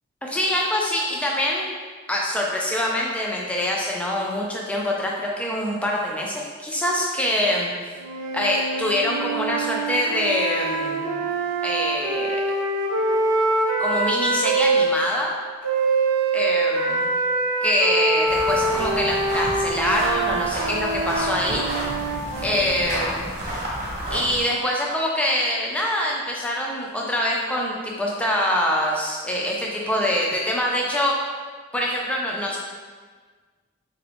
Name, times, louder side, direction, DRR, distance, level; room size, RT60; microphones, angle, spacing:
voice 1, 0.2-1.7 2.1-7.7 8.3-11.2 11.6-12.4 13.8-15.3 16.3-17.1 17.6-21.7 22.4-23.3 24.1-31.1 31.7-32.6, left 1 dB, 5° left, -2 dB, 0.4 m, -24 dB
sound 1, 8.0-14.9 15.6-22.8, right 3 dB, 85° right, 0.5 m, -24 dB
sound 2, 18.3-24.4, right 1 dB, 30° right, 1.0 m, -31 dB
3.6 x 2.5 x 3.4 m, 1.5 s
head